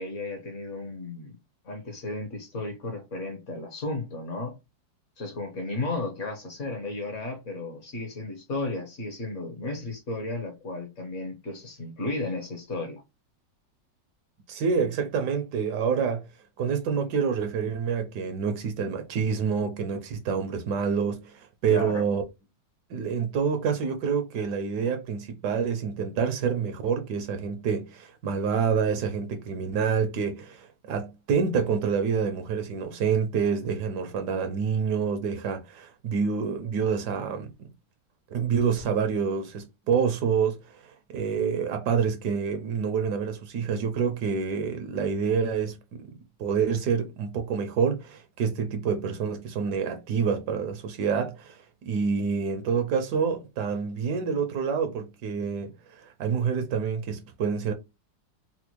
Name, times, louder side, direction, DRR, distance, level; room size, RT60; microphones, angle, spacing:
voice 1, 0.0-1.4 1.6-4.6 5.2-13.0 21.7-22.0, left 2 dB, 50° left, 1.1 m, -34 dB
voice 2, 14.5-16.3 16.6-22.2 22.9-37.7 38.3-57.7, right 6 dB, 75° right, 1.1 m, -27 dB
4.2 x 2.1 x 2.9 m
omnidirectional pair, 2.0 m